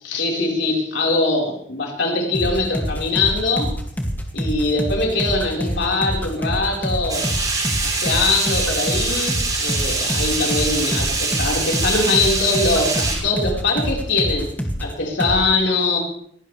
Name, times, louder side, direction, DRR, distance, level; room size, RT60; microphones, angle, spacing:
voice 1, 0.0-3.7 4.3-7.3 7.8-14.5 14.8-16.0, left 3 dB, 65° left, -1 dB, 4.8 m, -22 dB
sound 1, 2.3-14.9 15.2-15.4, equal, 10° left, 2.4 m, -26 dB
sound 2, 7.1-13.2, right 3 dB, 20° right, 6.5 m, -24 dB
22.0 x 17.5 x 3.4 m, 0.66 s
head